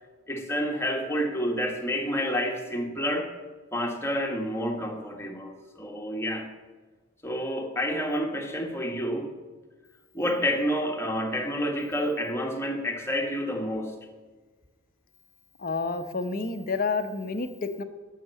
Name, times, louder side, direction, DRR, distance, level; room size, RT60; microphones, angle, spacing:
voice 1, 0.3-3.3 3.7-6.6 7.2-9.3 10.1-14.0, equal, 10° left, 2 dB, 1.3 m, -29 dB
voice 2, 15.6-17.8, left 4 dB, 40° left, 9 dB, 0.8 m, -29 dB
12.0 x 6.6 x 8.2 m, 1.4 s
head